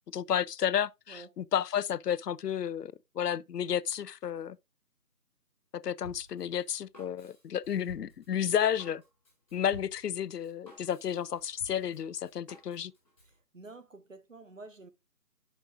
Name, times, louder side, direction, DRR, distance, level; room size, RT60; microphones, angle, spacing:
voice 1, 0.1-4.6 5.7-9.0 9.5-12.9, left 9 dB, 85° left, 0.6 m, -32 dB
Drum kit, 6.0-13.3, left 1 dB, 20° left, 4.5 m, -53 dB
voice 2, 13.5-14.9, right 3 dB, 55° right, 1.0 m, -49 dB
11.0 x 5.3 x 2.4 m
figure-of-eight pair, 180°, 46 cm